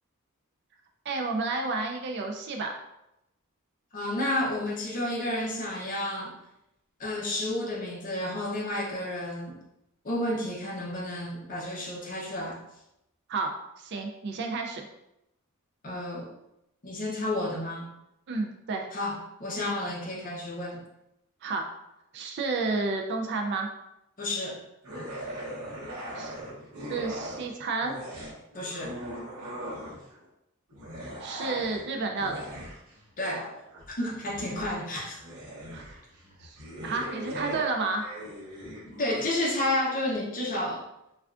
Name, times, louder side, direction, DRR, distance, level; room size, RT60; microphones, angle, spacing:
voice 1, 1.1-2.7 13.3-14.8 18.3-18.9 21.4-21.7 22.1-23.7 26.2-26.3 26.9-27.9 31.0-32.5 35.7-35.8 36.4-36.6 36.8-38.0, right 3 dB, 50° right, 3 dB, 0.4 m, -31 dB
voice 2, 3.9-6.3 7.0-9.6 10.0-12.6 15.8-16.3 16.8-17.9 18.9-20.8 24.2-24.6 28.5-28.9 33.2-33.4 33.9-35.2 38.8-40.8, left 1 dB, 40° left, -3 dB, 0.7 m, -31 dB
sound 1, 24.8-27.5 27.8-30.2 30.7-39.3, equal, 80° right, 0.8 m, -40 dB
3.3 x 2.3 x 2.4 m, 0.86 s
head